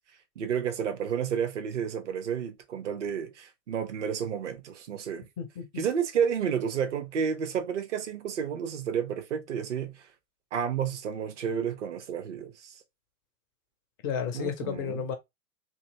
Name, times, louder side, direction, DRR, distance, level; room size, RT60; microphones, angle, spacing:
voice 1, 0.4-5.3 5.8-10.0 10.5-12.7 14.3-15.1, right 7 dB, 55° right, 0.9 m, -31 dB
voice 2, 5.4-5.8 14.0-15.1, left 7 dB, 15° left, 0.3 m, -32 dB
2.9 x 2.7 x 2.7 m
figure-of-eight pair, 105°, 42 cm